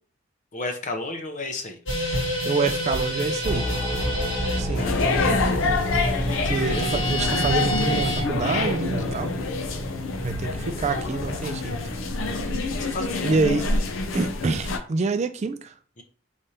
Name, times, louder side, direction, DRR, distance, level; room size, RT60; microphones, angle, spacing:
voice 1, 0.5-1.8 4.0-4.1 4.7-6.0 6.5-7.0 9.3-9.5 12.8-13.4 13.6-13.7 16.0-16.1, left 2 dB, 40° left, 0.7 m, -34 dB
sound 1, 1.9-8.3, equal, 65° left, 1.8 m, -28 dB
voice 2, 2.4-3.7 4.6-4.9 6.5-9.3 10.2-12.0 13.2-13.7 14.1-15.7, right 4 dB, 35° right, 0.3 m, -27 dB
sound 2, 3.4-13.3, equal, 5° right, 1.0 m, -31 dB
sound 3, 4.8-14.8, left 3 dB, 90° left, 0.7 m, -27 dB
5.0 x 3.2 x 2.8 m
head